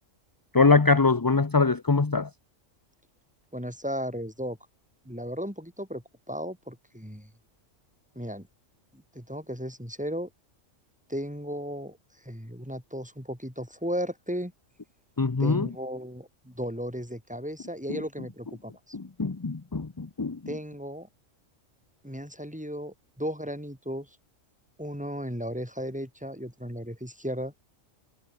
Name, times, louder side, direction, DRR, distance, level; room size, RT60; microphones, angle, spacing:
voice 1, 0.5-2.3 15.2-15.7 17.9-18.0 18.9-20.4, left 4 dB, 20° left, 0.6 m, -23 dB
voice 2, 3.5-4.6 5.0-7.3 8.1-8.5 8.9-10.3 11.1-14.5 15.4-19.0 20.5-21.1 22.0-24.1 24.8-27.5, equal, 5° right, 6.4 m, -35 dB
omnidirectional pair, 1.3 m